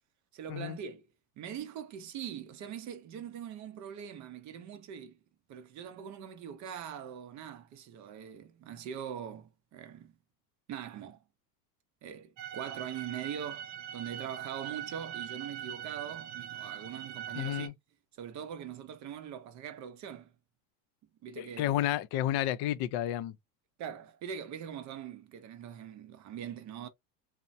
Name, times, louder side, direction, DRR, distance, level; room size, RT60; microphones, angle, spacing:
voice 1, 0.3-1.1 1.4-5.2 5.5-10.1 10.7-11.2 12.0-17.7 18.2-20.3 21.2-21.7 23.8-26.9, right 9 dB, 35° right, 0.5 m, -42 dB
sound 1, 12.4-17.7, right 10 dB, 90° right, 0.7 m, -42 dB
voice 2, 17.3-17.7 21.4-23.4, left 12 dB, 50° left, 0.5 m, -31 dB
3.0 x 2.1 x 2.5 m
supercardioid pair, 115°, 49 cm